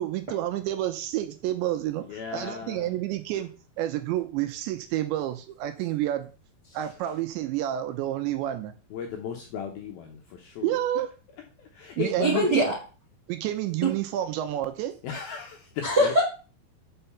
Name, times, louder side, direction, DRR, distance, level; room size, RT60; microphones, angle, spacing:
voice 1, 0.0-3.5 3.8-6.3 6.7-8.7 10.6-11.1 12.0-12.7 13.3-14.9, right 13 dB, 80° right, 9 dB, 2.9 m, -29 dB
voice 2, 2.1-2.9 8.9-10.8 11.6-12.6 15.0-16.1, left 7 dB, 75° left, 2 dB, 2.2 m, -36 dB
voice 3, 12.2-12.7 13.8-13.9 15.8-16.2, right 1 dB, 50° right, -3 dB, 1.2 m, -22 dB
6.7 x 5.7 x 7.0 m, 0.35 s
omnidirectional pair, 5.5 m